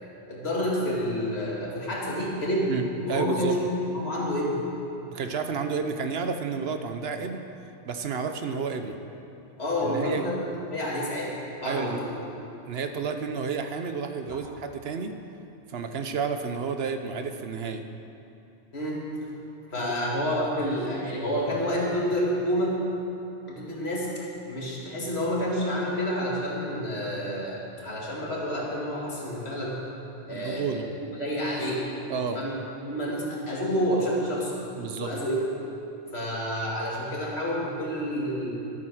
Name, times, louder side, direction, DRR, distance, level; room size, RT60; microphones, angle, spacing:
voice 1, 0.3-3.7 3.9-4.6 9.6-11.3 11.6-12.1 14.3-14.4 18.7-19.0 19.7-22.8 23.5-24.1 24.5-29.8 30.3-30.7 31.2-32.5 32.9-34.6 35.0-35.4 36.1-38.5, equal, 65° left, -4 dB, 2.5 m, -29 dB
voice 2, 2.7-3.6 5.1-7.4 7.9-9.0 9.8-10.2 11.6-12.0 12.6-15.2 15.7-17.8 19.8-20.0 30.3-30.9 32.1-32.4 34.8-35.1, right 5 dB, 65° right, 7 dB, 0.9 m, -31 dB
12.5 x 8.9 x 6.3 m, 2.8 s
omnidirectional pair, 1.2 m